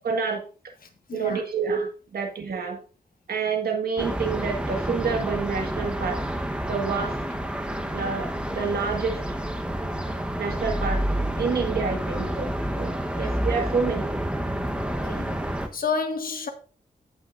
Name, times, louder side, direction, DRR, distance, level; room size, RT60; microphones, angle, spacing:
voice 1, 0.0-0.4 1.1-2.8 3.3-6.2 6.7-7.2 7.9-9.2 10.4-11.1 11.4-14.1, right 5 dB, 80° right, 1.6 m, -28 dB
voice 2, 1.1-1.4 13.2-13.3 14.9-15.4 15.7-16.5, left 5 dB, 70° left, 1.6 m, -30 dB
sound 1, 4.0-15.7, right 1 dB, 5° right, 1.0 m, -29 dB
16.0 x 5.9 x 2.5 m
wide cardioid pair, 110°, 15 cm